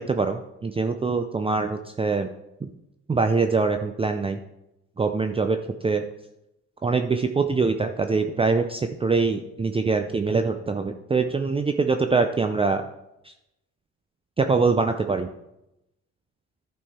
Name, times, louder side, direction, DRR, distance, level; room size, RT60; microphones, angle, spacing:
voice 1, 0.0-2.3 2.6-2.7 3.1-4.4 5.0-6.1 6.8-12.8 13.2-13.3 14.4-15.3, right 4 dB, 20° right, 7 dB, 0.5 m, -24 dB
11.0 x 5.5 x 4.2 m, 0.88 s
cardioid pair, 90°, 30 cm